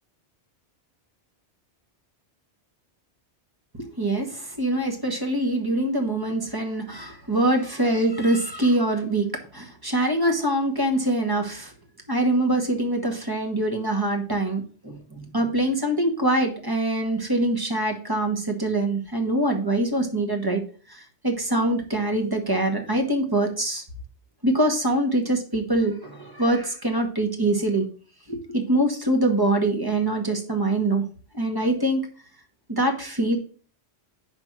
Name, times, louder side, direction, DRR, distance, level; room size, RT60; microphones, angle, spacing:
voice 1, 3.8-11.7 12.1-20.6 20.9-23.8 24.4-27.8 28.3-31.0 31.3-32.1 32.7-33.4, right 1 dB, 20° right, 3 dB, 1.2 m, -24 dB
5.3 x 4.5 x 6.0 m, 0.40 s
omnidirectional pair, 1.2 m